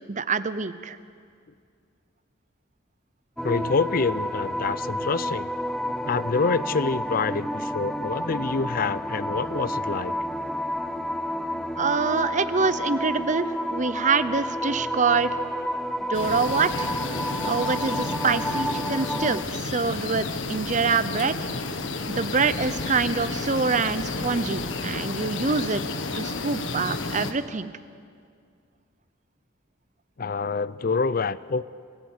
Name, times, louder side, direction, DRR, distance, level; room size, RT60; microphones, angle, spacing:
voice 1, 0.1-1.0 11.8-15.3 16.1-16.9 17.4-21.4 22.1-25.8 26.1-27.7, right 4 dB, 40° right, 14 dB, 0.8 m, -25 dB
voice 2, 3.4-5.5 6.1-10.1 30.2-31.6, left 4 dB, 50° left, 17 dB, 0.5 m, -26 dB
sound 1, 3.4-19.4, equal, 5° left, 0.7 m, -30 dB
sound 2, 16.1-27.3, left 3 dB, 85° left, 1.5 m, -31 dB
27.0 x 16.5 x 8.1 m, 2.2 s
head